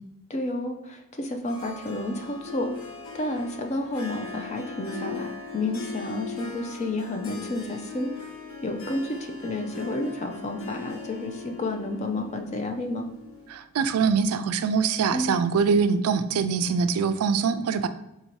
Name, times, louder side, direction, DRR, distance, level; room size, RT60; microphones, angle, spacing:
voice 1, 0.3-2.8 3.1-8.1 8.6-13.1 15.1-15.4, left 1 dB, 30° left, 5 dB, 0.4 m, -31 dB
Harp, 1.5-13.7, left 5 dB, 70° left, 0.8 m, -40 dB
voice 2, 13.5-17.9, right 5 dB, 85° right, 11 dB, 0.3 m, -23 dB
3.8 x 2.7 x 4.4 m, 0.92 s
head